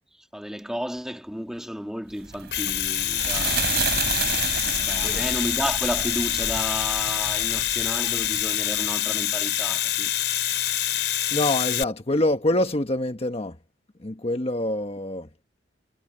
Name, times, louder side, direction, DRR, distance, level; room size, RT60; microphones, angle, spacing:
voice 1, 0.3-3.6 4.8-10.1, equal, 5° right, 2.5 m, -32 dB
sound 1, 2.2-8.9, right 6 dB, 60° right, 4.6 m, -31 dB
Domestic sounds home sounds, 2.3-11.8, left 13 dB, 70° left, 5.3 m, -26 dB
voice 2, 4.9-5.2 11.3-13.5 14.0-15.3, left 1 dB, 35° left, 1.3 m, -25 dB
head